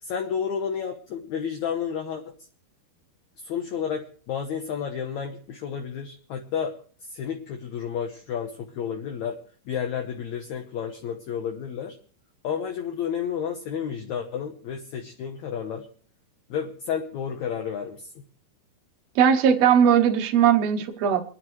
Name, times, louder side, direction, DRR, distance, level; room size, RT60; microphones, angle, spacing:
voice 1, 0.0-2.2 3.4-6.7 7.0-9.4 9.7-12.0 12.4-15.9 16.5-18.1, left 7 dB, 70° left, 3 dB, 1.8 m, -31 dB
voice 2, 19.1-21.3, right 8 dB, 70° right, 5 dB, 1.6 m, -19 dB
29.0 x 10.0 x 3.2 m, 0.44 s
omnidirectional pair, 4.6 m